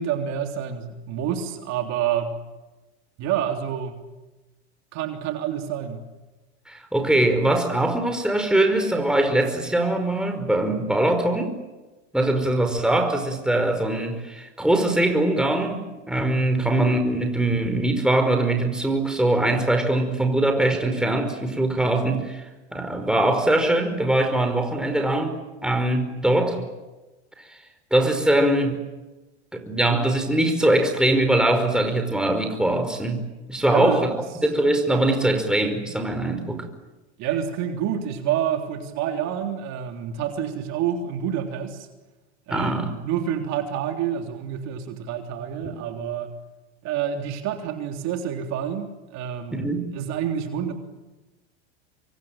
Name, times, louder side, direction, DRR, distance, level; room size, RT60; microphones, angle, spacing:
voice 1, 0.0-2.4 3.2-4.0 4.9-6.0 16.4-16.7 33.6-34.0 37.2-41.9 42.5-46.4 46.8-50.7, right 9 dB, 50° right, 4 dB, 3.6 m, -28 dB
voice 2, 6.7-11.5 12.1-15.8 16.1-22.4 22.7-25.4 25.6-26.6 27.9-28.8 29.5-33.2 33.5-34.1 34.4-36.6 42.5-42.9 45.6-45.7 49.5-49.8, right 1 dB, ahead, 5 dB, 5.1 m, -22 dB
26.5 x 23.5 x 9.0 m, 1.1 s
hypercardioid pair, 105°, 34 cm